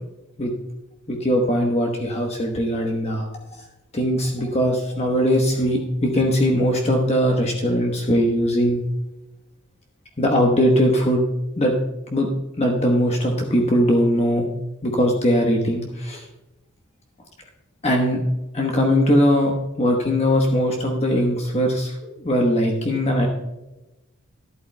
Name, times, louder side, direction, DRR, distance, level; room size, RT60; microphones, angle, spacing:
voice 1, 1.1-3.6 3.9-8.8 10.2-11.3 11.6-11.7 12.1-12.3 12.6-14.5 14.8-16.3 17.8-18.2 18.5-23.3, equal, 30° left, 1 dB, 1.0 m, -20 dB
12.5 x 11.5 x 2.2 m, 1.0 s
head